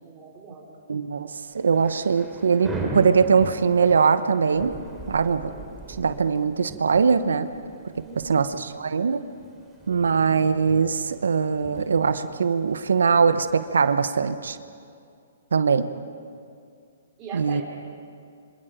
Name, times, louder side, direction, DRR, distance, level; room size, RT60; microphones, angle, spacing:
voice 1, 0.0-1.3 8.0-8.4 17.2-17.6, right 5 dB, 25° right, -5 dB, 3.7 m, -42 dB
voice 2, 0.9-1.3 1.5-4.7 5.1-5.5 5.9-7.5 8.2-9.2 9.9-14.6 15.5-15.9 17.3-17.6, right 5 dB, 80° right, 11 dB, 1.1 m, -21 dB
Thunder / Rain, 1.5-14.2, right 2 dB, 5° right, 3.4 m, -39 dB
27.0 x 26.0 x 5.1 m, 2.3 s
hypercardioid pair, 135°, 0 cm